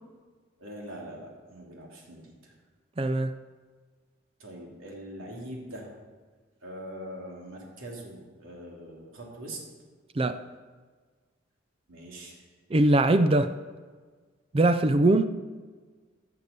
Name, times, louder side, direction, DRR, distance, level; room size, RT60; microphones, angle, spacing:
voice 1, 0.6-2.5 4.4-5.9 6.6-9.6 11.9-12.4, right 1 dB, 85° right, -2 dB, 3.0 m, -42 dB
voice 2, 3.0-3.3 10.2-10.4 12.7-13.6 14.5-15.2, right 2 dB, 25° right, 10 dB, 0.4 m, -21 dB
14.5 x 6.7 x 6.8 m, 1.5 s
head